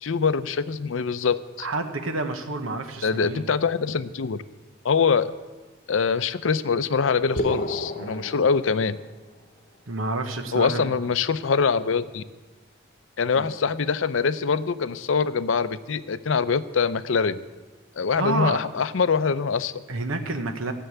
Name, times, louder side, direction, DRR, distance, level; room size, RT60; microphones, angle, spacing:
voice 1, 0.0-1.7 3.0-4.4 4.8-5.3 5.9-9.0 10.5-12.2 13.2-17.4 18.0-19.7, left 5 dB, 70° left, 14 dB, 0.5 m, -24 dB
voice 2, 1.6-3.5 8.0-8.3 9.9-10.9 13.3-13.5 18.2-18.6 19.9-20.7, right 2 dB, 85° right, 6 dB, 1.1 m, -29 dB
sound 1, 7.4-9.3, left 1 dB, 40° left, 0.9 m, -31 dB
14.5 x 6.8 x 8.1 m, 1.3 s
head